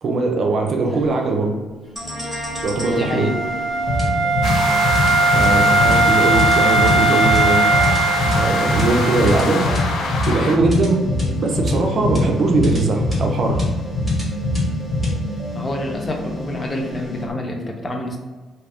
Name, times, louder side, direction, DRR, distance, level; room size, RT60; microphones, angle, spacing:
voice 1, 0.0-1.5 2.6-3.3 5.3-7.6 8.4-9.7 10.3-11.0 11.4-13.6, right 3 dB, 55° right, 2 dB, 0.5 m, -20 dB
sound 1, 2.0-17.3, left 1 dB, 5° left, 1.3 m, -24 dB
Wind instrument woodwind instrument, 2.1-9.9, right 3 dB, 30° right, 0.8 m, -20 dB
voice 2, 2.9-3.4 15.5-18.2, left 1 dB, 30° left, 2 dB, 0.6 m, -27 dB
sound 2, 4.4-10.6, left 3 dB, 75° left, 0.4 m, -25 dB
2.7 x 2.4 x 3.4 m, 1.3 s
cardioid pair, 90°, 0 cm